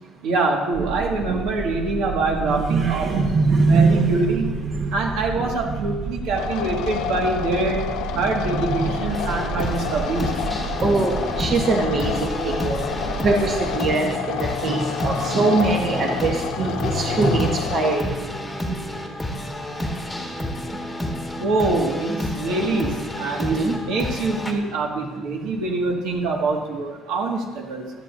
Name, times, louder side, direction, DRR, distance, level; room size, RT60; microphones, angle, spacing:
voice 1, 0.2-3.2 3.6-4.6 4.9-7.9 8.2-10.3 21.4-27.9, right 3 dB, 75° right, 1 dB, 1.9 m, -25 dB
sound 1, 0.7-13.8, right 6 dB, 25° right, 0.4 m, -33 dB
voice 2, 2.4-5.0 5.4-6.0 7.6-7.8 8.1-9.8 10.0-10.1 10.5-12.8 13.2-18.2 18.7-18.8 19.9-20.0 21.4-21.5 22.1-22.3 23.4-23.8, right 3 dB, 40° right, 1 dB, 1.2 m, -23 dB
sound 2, 6.3-18.0, left 10 dB, 80° left, 0.6 m, -30 dB
sound 3, 9.1-24.5, left 1 dB, 5° left, 1.4 m, -30 dB
16.5 x 11.5 x 2.7 m, 1.2 s
cardioid pair, 155°, 0 cm